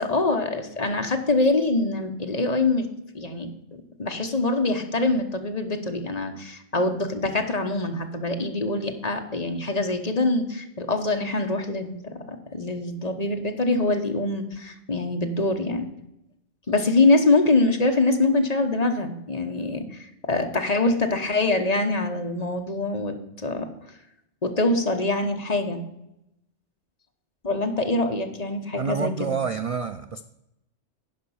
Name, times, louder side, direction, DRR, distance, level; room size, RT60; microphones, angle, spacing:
voice 1, 0.0-2.9 3.1-15.8 16.7-23.7 24.4-25.8 27.4-29.4, left 2 dB, 35° left, 5 dB, 1.1 m, -24 dB
voice 2, 28.8-30.2, right 6 dB, 50° right, 9 dB, 0.4 m, -28 dB
11.0 x 5.2 x 7.0 m, 0.85 s
omnidirectional pair, 1.2 m